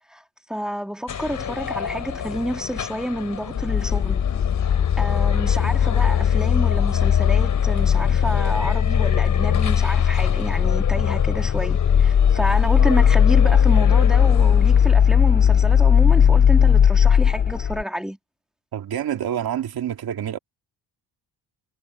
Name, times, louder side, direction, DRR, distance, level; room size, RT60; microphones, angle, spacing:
voice 1, 0.5-4.3 5.0-18.2, equal, ahead, 1.9 m, -29 dB
sound 1, 1.1-14.9, left 8 dB, 45° left, 5.6 m, -32 dB
sound 2, 3.6-17.8, left 8 dB, 25° left, 0.4 m, -18 dB
voice 2, 18.7-20.4, right 10 dB, 60° right, 2.5 m, -27 dB
cardioid pair, 140°, 42 cm